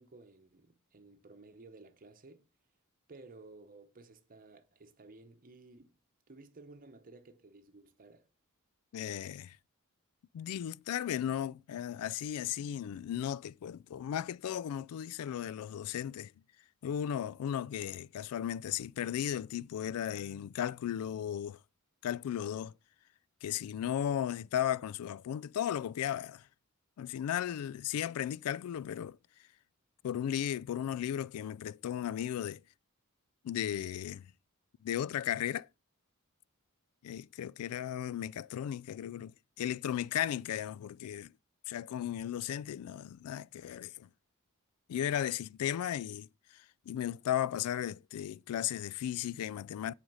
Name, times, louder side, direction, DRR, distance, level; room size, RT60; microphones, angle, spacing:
voice 1, 0.0-2.5 3.1-6.0 6.3-8.3, right 3 dB, 40° right, 0.9 m, -55 dB
voice 2, 8.9-9.6 10.3-16.3 16.8-21.6 22.0-22.7 23.4-26.4 27.0-29.2 30.0-32.6 33.4-34.3 34.8-35.7 37.0-39.3 39.6-41.3 41.7-44.1 44.9-49.9, left 10 dB, 90° left, 0.3 m, -35 dB
7.8 x 5.0 x 5.5 m
head